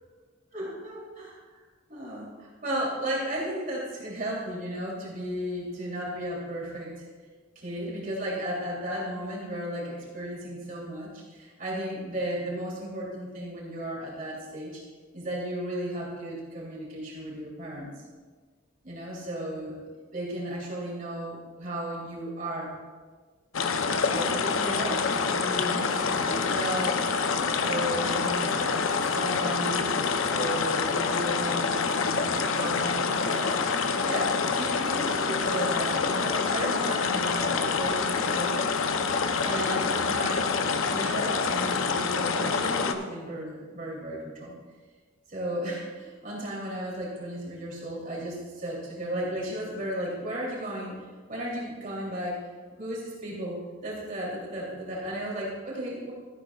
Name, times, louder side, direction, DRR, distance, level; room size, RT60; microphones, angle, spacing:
voice 1, 0.5-1.4 1.9-7.0 7.5-14.8 15.1-17.9 18.8-19.8 20.1-22.8 24.1-27.0 27.6-29.9 30.3-33.5 34.0-38.6 39.4-40.5 40.9-44.5 45.3-52.5 52.8-56.1, right 1 dB, 40° right, -4 dB, 3.0 m, -34 dB
sound 1, 23.5-42.9, left 5 dB, 80° left, 0.6 m, -27 dB
13.0 x 11.5 x 2.4 m, 1.4 s
head